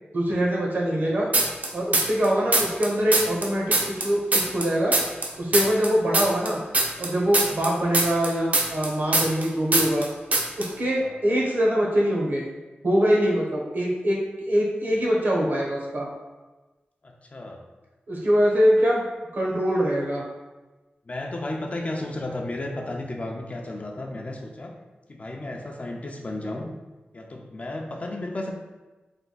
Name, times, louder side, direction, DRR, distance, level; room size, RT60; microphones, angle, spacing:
voice 1, 0.1-1.3 1.7-4.9 5.4-6.6 7.0-10.0 10.6-12.5 12.8-16.1 18.1-19.0 19.3-20.2, equal, 65° right, -3 dB, 1.0 m, -23 dB
sound 1, 1.3-2.3 2.5-5.3 5.5-9.5 9.7-10.1 10.3-10.7, right 2 dB, 45° right, 0.6 m, -22 dB
voice 2, 11.0-11.4 17.0-17.6 21.1-24.7 25.1-26.7 27.1-28.5, left 2 dB, 40° left, 1 dB, 0.5 m, -33 dB
3.4 x 2.2 x 4.0 m, 1.2 s
wide cardioid pair, 70°, 4 cm